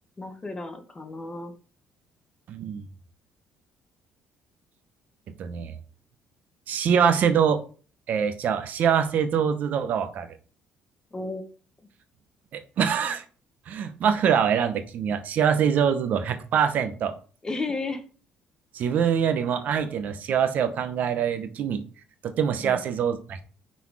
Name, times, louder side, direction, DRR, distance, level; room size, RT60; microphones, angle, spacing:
voice 1, 0.2-1.5 11.1-11.5 17.4-18.0 22.6-22.8, left 3 dB, 20° left, 7 dB, 1.1 m, -33 dB
voice 2, 2.5-2.8 5.4-5.8 6.7-7.6 8.1-10.3 12.5-13.2 13.7-17.1 18.7-21.8 22.2-23.4, right 7 dB, 60° right, 9 dB, 0.8 m, -24 dB
5.6 x 4.1 x 4.7 m, 0.38 s
cardioid pair, 110°, 3 cm